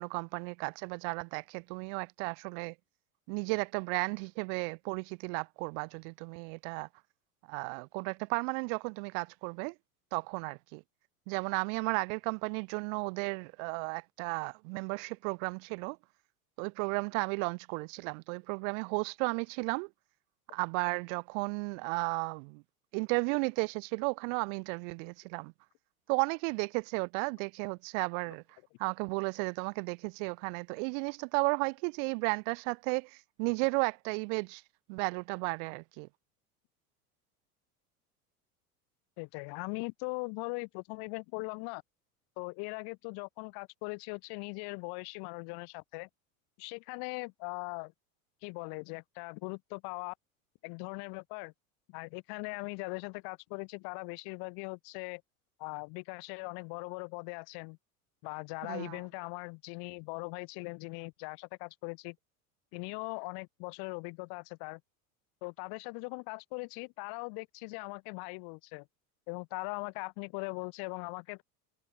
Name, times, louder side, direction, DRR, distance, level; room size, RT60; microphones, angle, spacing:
voice 1, 0.0-2.7 3.3-6.9 7.5-9.7 10.1-10.8 11.3-16.0 16.6-19.9 20.5-22.6 22.9-25.5 26.1-28.4 28.8-34.6 34.9-36.1 58.7-59.0, right 39 dB, 60° right, 0.9 m, -34 dB
voice 2, 39.2-41.8 42.4-46.1 46.6-47.9 48.4-50.1 50.6-51.5 51.9-55.2 55.6-57.8 58.2-62.2 62.7-64.8 65.4-68.9 69.3-71.4, left 33 dB, 60° left, 4.2 m, -40 dB
hypercardioid pair, 95°, 43 cm